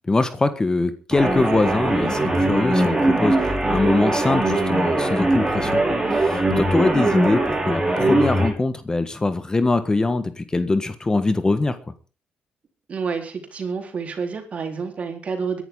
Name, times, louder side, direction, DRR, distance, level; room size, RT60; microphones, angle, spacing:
voice 1, 0.1-5.8 6.1-11.8, left 3 dB, 25° left, 11 dB, 1.5 m, -23 dB
sound 1, 1.1-8.5, right 2 dB, 20° right, 5.9 m, -21 dB
voice 2, 12.9-15.6, right 5 dB, 50° right, 5 dB, 4.1 m, -29 dB
22.0 x 11.5 x 3.9 m, 0.35 s
cardioid pair, 85°, 3 cm